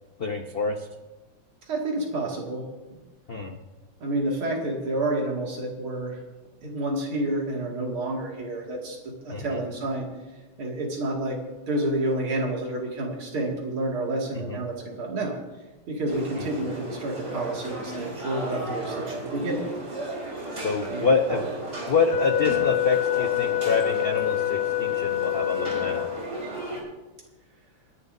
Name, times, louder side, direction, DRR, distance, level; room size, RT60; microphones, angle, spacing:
voice 1, 0.2-0.9 3.3-3.6 9.3-9.6 14.5-14.6 16.4-16.5 20.5-21.5 21.9-26.1, left 4 dB, 65° left, 4 dB, 0.5 m, -26 dB
voice 2, 1.6-2.7 4.0-6.2 6.6-10.1 10.6-15.3 15.9-19.7 20.9-21.1, right 1 dB, 80° right, -1 dB, 3.1 m, -29 dB
sound 1, 16.1-26.8, right 2 dB, 35° right, 4.5 m, -35 dB
Wind instrument woodwind instrument, 22.1-26.5, left 14 dB, 85° left, 1.5 m, -26 dB
27.5 x 11.0 x 2.7 m, 1.2 s
omnidirectional pair, 2.3 m